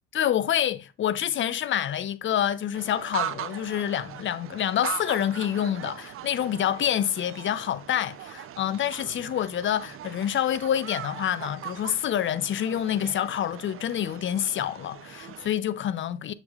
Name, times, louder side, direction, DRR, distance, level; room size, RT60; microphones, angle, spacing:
voice 1, 0.1-16.3, left 10 dB, 30° left, 0.6 m, -27 dB
sound 1, 2.7-15.5, right 11 dB, 35° right, 0.7 m, -40 dB
6.9 x 6.7 x 2.4 m
hypercardioid pair, 65°, 38 cm